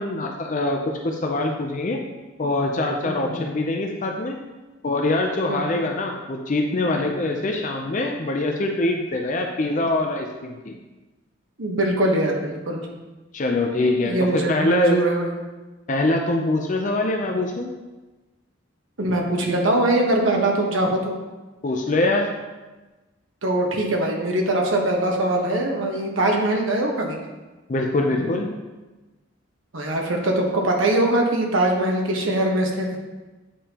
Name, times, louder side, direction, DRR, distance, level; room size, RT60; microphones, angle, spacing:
voice 1, 0.0-2.0 2.4-4.4 4.8-10.8 13.3-15.0 15.9-17.7 21.6-22.3 27.7-28.5, left 2 dB, 40° left, 2 dB, 0.5 m, -23 dB
voice 2, 3.0-3.4 5.5-5.8 11.6-12.9 14.0-15.3 19.0-21.2 23.4-27.2 29.7-33.0, right 1 dB, 75° right, 0 dB, 1.2 m, -22 dB
8.5 x 5.4 x 2.9 m, 1.2 s
head